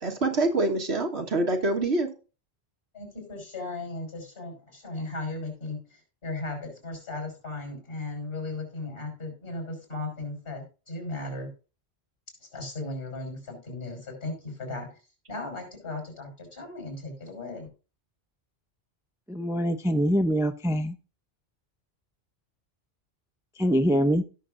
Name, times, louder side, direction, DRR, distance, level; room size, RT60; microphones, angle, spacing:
voice 1, 0.0-2.1, right 2 dB, 90° right, 3 dB, 1.8 m, -25 dB
voice 2, 2.9-11.5 12.4-15.0 15.3-17.7, left 2 dB, 65° left, 3 dB, 5.7 m, -36 dB
voice 3, 19.3-21.0 23.6-24.2, equal, 5° right, 7 dB, 0.5 m, -24 dB
16.5 x 6.6 x 2.6 m, 0.33 s
omnidirectional pair, 1.1 m